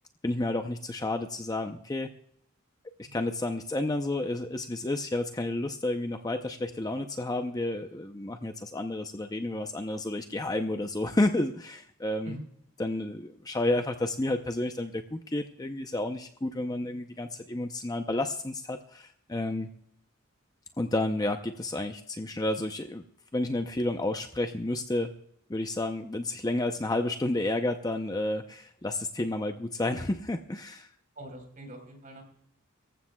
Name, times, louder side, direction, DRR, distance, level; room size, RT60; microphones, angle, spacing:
voice 1, 0.2-2.1 3.0-12.3 12.8-19.7 20.8-23.0 23.3-25.1 25.5-30.9, left 2 dB, 15° left, 6 dB, 0.6 m, -31 dB
voice 2, 31.2-32.2, right 1 dB, 40° right, 4 dB, 4.0 m, -44 dB
24.0 x 14.5 x 2.3 m, 0.67 s
head